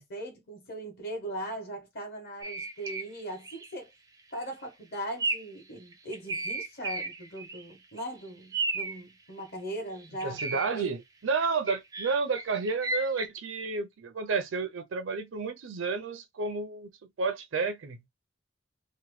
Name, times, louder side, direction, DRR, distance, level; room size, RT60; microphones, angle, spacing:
voice 1, 0.0-3.9 4.3-11.0, right 1 dB, 55° left, 1.2 m, -39 dB
sound 1, 2.4-3.1 3.4-3.7 4.2-4.4 5.2-5.6 5.9-7.7 8.0-8.1 8.5-9.0 10.0-10.7 11.4-13.3, right 3 dB, 20° right, 0.4 m, -34 dB
voice 2, 10.2-16.9 17.2-18.1, right 4 dB, 75° right, 0.5 m, -31 dB
2.9 x 2.1 x 3.1 m
head